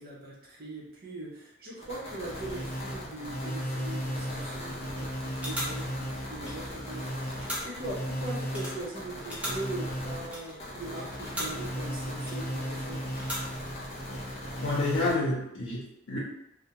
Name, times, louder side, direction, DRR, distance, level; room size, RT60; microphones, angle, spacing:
voice 1, 0.0-13.1, right 2 dB, 50° right, -4 dB, 0.7 m, -41 dB
sound 1, 1.8-15.1, equal, 35° left, 0.6 m, -36 dB
sound 2, 4.9-5.0 5.3-6.9 7.2-8.0 8.4-11.7 12.2-12.7 13.0-13.8 14.1-14.4, equal, 5° right, 0.5 m, -39 dB
voice 2, 14.6-16.2, left 2 dB, 90° left, -6 dB, 0.6 m, -29 dB
2.2 x 2.1 x 2.8 m, 0.80 s
head